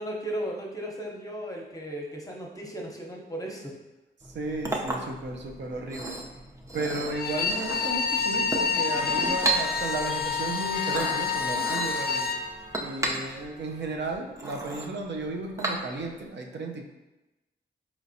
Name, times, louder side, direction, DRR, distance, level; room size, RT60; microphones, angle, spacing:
voice 1, 0.0-3.7, right 1 dB, 15° left, -1 dB, 0.9 m, -35 dB
Chink clink, 4.2-16.2, right 2 dB, 15° right, 0.6 m, -35 dB
voice 2, 4.3-6.2 6.7-12.3 12.8-16.9, right 2 dB, 65° right, 2 dB, 0.5 m, -34 dB
Bowed string instrument, 7.1-12.4, left 5 dB, 50° left, 0.4 m, -28 dB
Clock, 8.9-14.9, right 1 dB, 35° right, 1.0 m, -43 dB
4.0 x 3.0 x 2.7 m, 1.0 s
cardioid pair, 45°, 20 cm